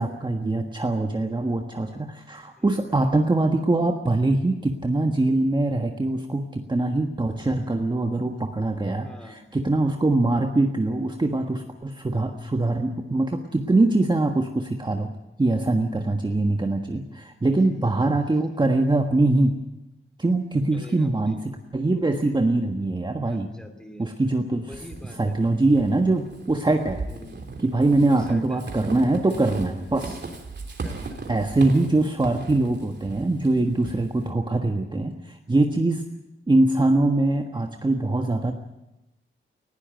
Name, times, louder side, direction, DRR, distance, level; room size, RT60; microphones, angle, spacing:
voice 1, 0.0-15.1 15.4-19.6 20.2-21.4 21.7-23.5 24.0-24.7 25.2-27.0 27.6-30.2 31.3-36.1 36.5-38.5, right 2 dB, 20° right, 4 dB, 1.4 m, -23 dB
voice 2, 9.0-9.5 17.5-17.8 20.7-21.4 23.2-24.0 24.7-25.4 27.1-27.4 28.1-28.6 30.8-31.3, left 1 dB, 5° left, 7 dB, 3.0 m, -45 dB
Walk footsteps / Squeak, 24.7-34.3, right 3 dB, 55° right, 3.3 m, -37 dB
19.5 x 16.5 x 9.3 m, 0.96 s
wide cardioid pair, 120°, 21 cm